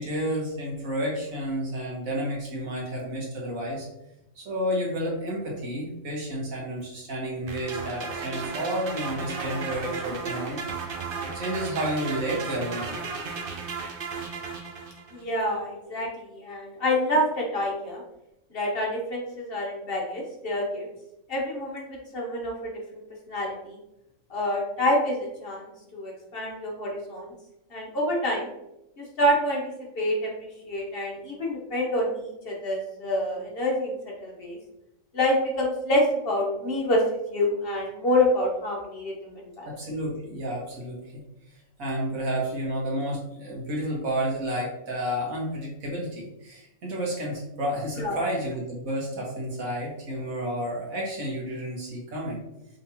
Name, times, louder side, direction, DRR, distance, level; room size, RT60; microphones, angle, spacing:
voice 1, 0.0-3.9 4.4-10.6 11.3-13.0 39.6-41.2 41.5-52.4, equal, 85° right, -3 dB, 1.8 m, -31 dB
sound 1, 7.5-15.2, right 5 dB, 50° right, 0.7 m, -34 dB
voice 2, 15.1-18.0 18.5-20.9 21.3-22.7 23.3-23.8 24.3-27.3 27.7-28.5 29.0-29.6 29.9-30.3 30.7-33.9 34.2-34.6 35.1-37.0 37.3-39.7 48.0-48.2, left 1 dB, 50° left, -2 dB, 1.1 m, -27 dB
5.3 x 3.4 x 2.8 m, 0.88 s
omnidirectional pair, 1.4 m